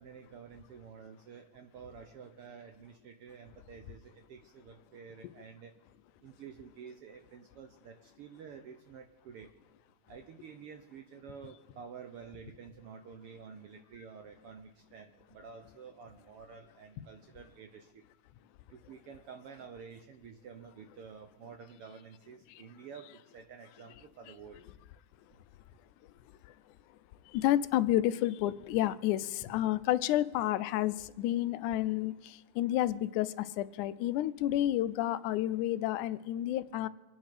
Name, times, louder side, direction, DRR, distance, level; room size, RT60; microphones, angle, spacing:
voice 1, 0.0-5.7 6.2-9.5 10.1-18.0 18.7-24.6, right 6 dB, 70° right, 1.4 m, -50 dB
voice 2, 27.3-36.9, left 13 dB, 85° left, 2.1 m, -30 dB
26.0 x 9.9 x 5.0 m
omnidirectional pair, 3.5 m